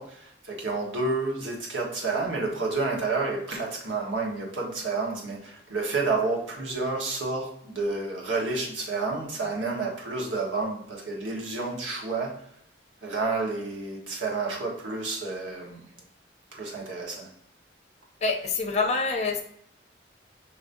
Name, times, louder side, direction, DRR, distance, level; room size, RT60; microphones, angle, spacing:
voice 1, 0.0-12.5 13.0-15.8 16.5-17.3, right 3 dB, 90° right, -2 dB, 1.3 m, -30 dB
voice 2, 18.2-19.4, left 4 dB, 35° left, 3 dB, 0.6 m, -26 dB
6.6 x 3.0 x 2.6 m, 0.69 s
head